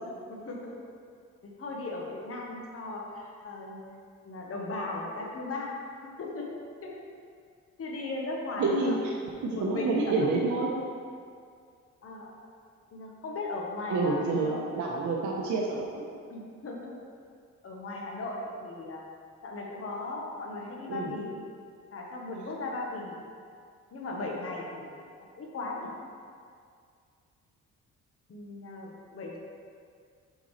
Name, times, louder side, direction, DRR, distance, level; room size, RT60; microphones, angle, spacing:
voice 1, 0.3-0.9 1.4-3.8 4.2-5.8 6.0-6.5 6.8-7.0 7.8-9.0 9.5-10.3 12.0-12.3 12.9-14.7 16.3-16.9 17.6-19.0 19.4-21.3 21.9-23.2 23.9-25.0 25.4-25.9 28.3-29.4, left 2 dB, 50° left, -1 dB, 1.1 m, -37 dB
voice 2, 8.6-10.7 13.9-16.1 20.9-21.1, right 3 dB, 70° right, -3 dB, 0.9 m, -28 dB
6.5 x 5.2 x 3.2 m, 2.2 s
cardioid pair, 90°, 30 cm